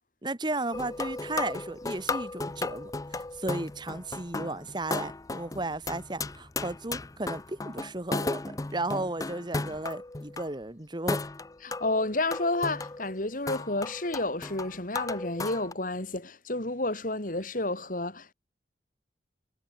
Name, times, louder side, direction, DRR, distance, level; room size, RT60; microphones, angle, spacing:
voice 1, 0.2-11.2, right 2 dB, 25° right, 1.5 m, -34 dB
sound 1, 0.7-10.5 11.1-15.7, left 3 dB, 20° left, 0.6 m, -35 dB
voice 2, 11.6-18.3, left 2 dB, 50° left, 3.4 m, -30 dB
head